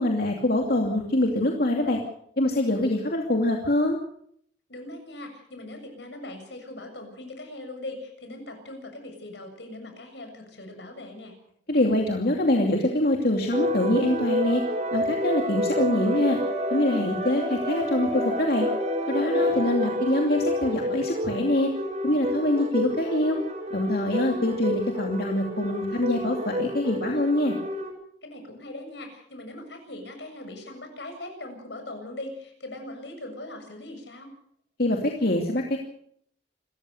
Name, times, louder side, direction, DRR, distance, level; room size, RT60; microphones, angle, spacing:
voice 1, 0.0-2.0 2.4-4.0 11.7-14.6 14.9-16.4 16.7-18.7 19.1-21.7 22.0-23.4 23.7-27.5 34.8-35.8, left 1 dB, 60° left, 1 dB, 2.6 m, -24 dB
voice 2, 4.7-11.4 19.2-19.5 28.2-34.3, left 1 dB, 80° left, 5 dB, 7.2 m, -40 dB
sound 1, 13.5-27.9, equal, 45° right, 5.6 m, -29 dB
28.0 x 14.5 x 6.6 m, 0.69 s
head